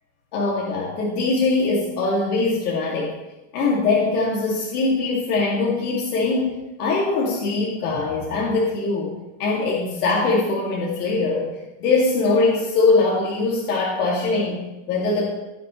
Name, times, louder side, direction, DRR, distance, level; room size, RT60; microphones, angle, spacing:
voice 1, 0.3-3.1 3.5-9.1 9.4-11.5 11.8-15.3, left 3 dB, 85° left, -5 dB, 2.5 m, -22 dB
17.0 x 6.7 x 3.2 m, 1.0 s
supercardioid pair, 145°, 44 cm